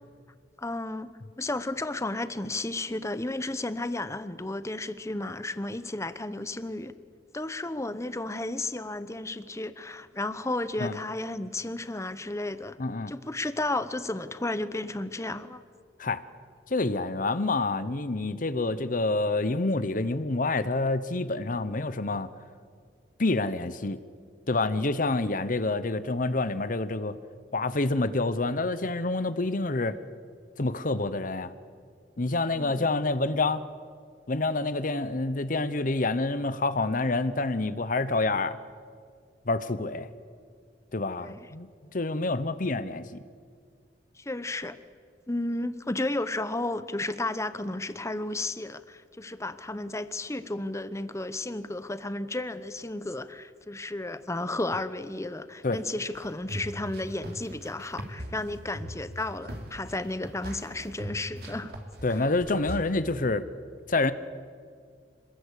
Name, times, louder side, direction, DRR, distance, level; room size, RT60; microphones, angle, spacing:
voice 1, 0.6-1.1 1.4-6.9 7.3-12.8 13.1-15.6 32.5-32.9 41.2-41.4 44.2-44.8 45.3-61.8 62.1-62.3, left 2 dB, 15° left, 1.0 m, -33 dB
voice 2, 12.8-13.1 16.0-16.2 16.7-22.3 23.2-24.0 24.5-27.2 27.5-30.0 30.6-31.5 32.2-33.6 34.3-38.6 39.5-40.1 40.9-43.2 55.6-55.8 62.0-63.4 63.9-64.1, left 2 dB, 50° left, 0.9 m, -27 dB
sound 1, 56.1-62.8, equal, 60° right, 3.3 m, -40 dB
27.0 x 20.5 x 8.4 m
head